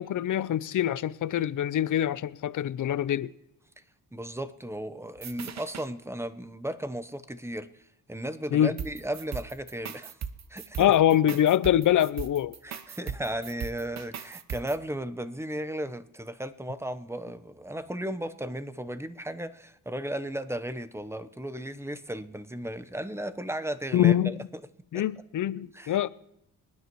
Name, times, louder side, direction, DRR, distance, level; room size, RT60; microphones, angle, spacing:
voice 1, 0.0-3.3 8.5-8.7 10.8-12.6 23.9-24.5 24.9-26.1, left 11 dB, 60° left, 0.6 m, -24 dB
voice 2, 4.1-7.8 8.1-10.2 10.5-10.9 12.6-24.4 24.9-25.0 25.7-26.0, right 1 dB, 5° right, 0.9 m, -35 dB
sound 1, 5.2-5.9 8.8-14.8, right 7 dB, 50° right, 0.9 m, -38 dB
26.0 x 9.8 x 3.1 m
cardioid pair, 75°, 35 cm